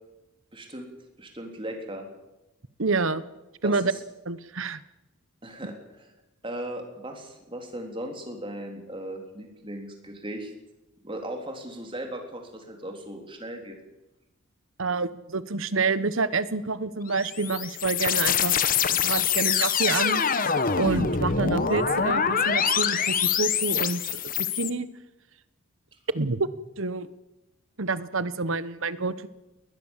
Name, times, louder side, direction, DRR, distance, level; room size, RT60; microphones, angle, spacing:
voice 1, 0.5-0.9 1.2-2.1 3.6-4.0 5.4-6.1 6.4-10.5 11.0-13.8 21.6-21.8, right 1 dB, 25° right, 3 dB, 3.8 m, -37 dB
voice 2, 2.8-3.2 3.6-3.9 4.2-4.8 14.8-18.5 18.9-20.4 20.7-24.9 26.1-26.5 26.8-27.1 27.8-29.3, right 3 dB, 65° right, 15 dB, 1.2 m, -28 dB
sound 1, 17.1-24.7, left 7 dB, 40° left, 1.2 m, -25 dB
20.5 x 20.5 x 7.4 m, 1.0 s
head